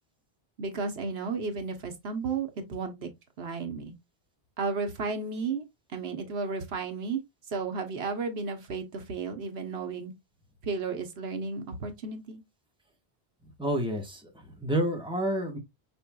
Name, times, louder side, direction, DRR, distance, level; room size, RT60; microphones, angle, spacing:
voice 1, 0.6-3.1 3.4-3.9 4.6-5.6 5.9-7.2 7.5-10.1 10.6-12.4, right 4 dB, 80° right, 1.2 m, -33 dB
voice 2, 13.6-15.6, right 1 dB, 5° right, 1.2 m, -29 dB
5.4 x 4.4 x 2.3 m
omnidirectional pair, 1.0 m